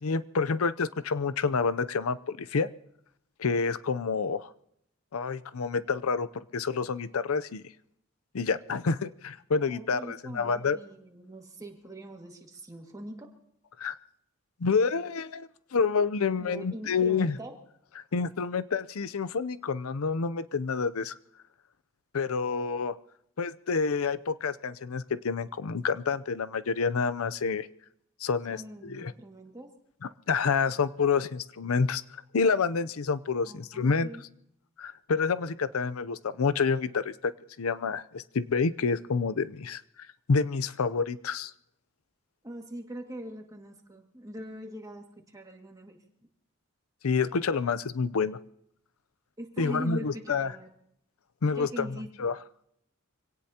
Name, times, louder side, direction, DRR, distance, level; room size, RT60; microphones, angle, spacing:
voice 1, 0.0-2.7 3.4-4.5 5.1-7.6 8.3-10.8 13.8-14.0 14.6-17.4 18.1-21.1 22.1-22.9 23.4-27.7 28.2-29.1 30.3-34.1 34.8-37.3 37.6-39.8 40.3-41.5 47.0-48.4 49.6-50.5 51.4-51.9 52.2-52.4, left 5 dB, 90° left, 16 dB, 0.6 m, -28 dB
voice 2, 9.7-13.3 16.4-17.6 28.5-29.7 33.4-34.2 42.4-46.0 49.4-50.7 51.6-52.1, right 1 dB, 15° right, 2 dB, 2.0 m, -42 dB
25.0 x 17.5 x 2.9 m, 0.74 s
head